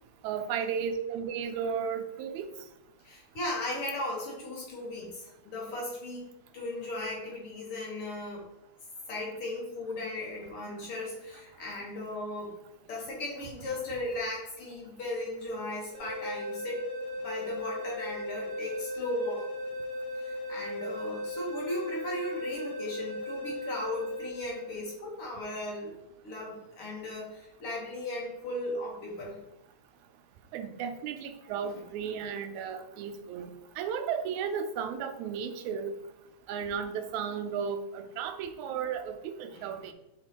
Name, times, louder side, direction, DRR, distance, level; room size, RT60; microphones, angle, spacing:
voice 1, 0.2-2.5 30.5-33.5 33.8-35.9 36.5-39.9, right 7 dB, 85° right, 7 dB, 1.9 m, -34 dB
voice 2, 3.0-6.3 6.5-8.4 9.1-12.5 12.9-16.9 17.2-19.5 20.1-26.0 26.2-29.4 31.6-31.8 39.5-39.9, left 1 dB, 55° left, -3 dB, 1.9 m, -37 dB
sound 1, 15.9-24.9, left 1 dB, 40° right, 1.7 m, -37 dB
7.7 x 4.3 x 2.9 m, 0.87 s
omnidirectional pair, 3.3 m